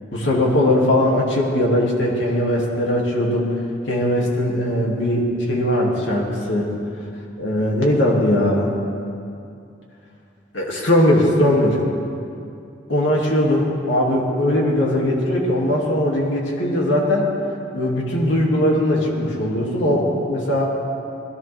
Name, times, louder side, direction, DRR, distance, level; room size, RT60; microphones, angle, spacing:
voice 1, 0.1-3.5 3.9-6.7 7.4-8.7 10.5-11.8 12.9-17.3 17.7-20.7, left 1 dB, 85° left, -3 dB, 2.6 m, -19 dB
19.5 x 14.5 x 3.5 m, 2.5 s
head